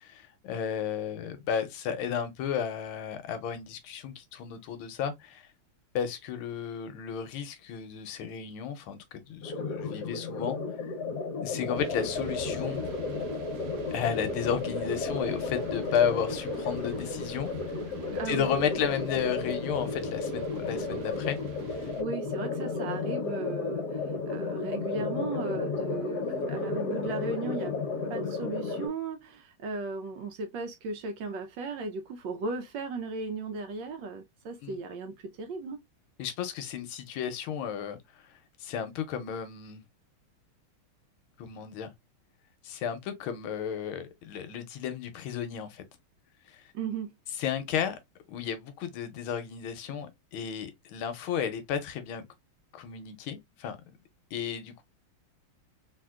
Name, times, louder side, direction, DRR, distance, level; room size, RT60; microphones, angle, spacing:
voice 1, 0.0-5.5 5.9-10.9 11.4-12.8 13.9-17.5 18.2-21.4 21.8-21.9 34.6-34.8 36.2-39.8 41.4-41.9 42.6-45.8 46.5-46.7 47.4-48.0 48.3-52.3 52.7-53.8 54.3-54.8, left 8 dB, 80° left, 1.4 m, -33 dB
sound 1, 9.4-28.9, left 3 dB, 60° left, 1.2 m, -33 dB
sound 2, 11.7-22.0, right 3 dB, 90° right, 1.5 m, -46 dB
voice 2, 18.1-18.7 22.0-27.8 28.1-35.8 46.7-47.1, right 3 dB, 75° right, 1.1 m, -36 dB
3.5 x 2.8 x 2.2 m
omnidirectional pair, 2.4 m